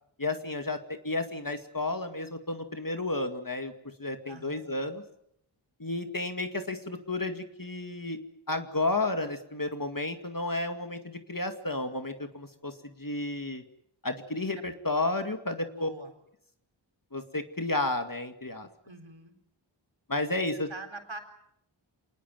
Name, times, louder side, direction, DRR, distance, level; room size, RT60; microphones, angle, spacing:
voice 1, 0.2-3.7 4.0-5.0 5.8-8.2 8.5-13.6 14.0-15.9 17.1-18.7 20.1-20.7, left 2 dB, 45° left, 7 dB, 2.3 m, -32 dB
voice 2, 4.3-4.8 14.5-14.6 15.7-16.1 18.8-19.3 20.5-21.2, right 3 dB, 70° right, 6 dB, 4.2 m, -44 dB
27.0 x 20.0 x 9.2 m, 0.75 s
wide cardioid pair, 45°, 47 cm